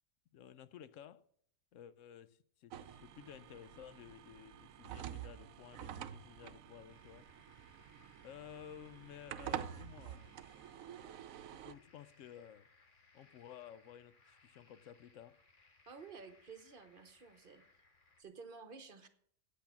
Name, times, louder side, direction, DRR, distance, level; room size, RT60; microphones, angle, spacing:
voice 1, 0.3-1.2 1.7-7.2 8.2-10.4 11.5-12.7 13.1-15.4, left 9 dB, 70° left, 0.9 m, -54 dB
sound 1, 2.7-11.7, right 10 dB, 75° right, 1.0 m, -48 dB
sound 2, 6.9-18.2, left 3 dB, 40° left, 1.2 m, -68 dB
voice 2, 15.9-17.6 18.2-19.1, right 5 dB, 40° right, 1.0 m, -52 dB
8.4 x 8.3 x 6.9 m
omnidirectional pair, 1.5 m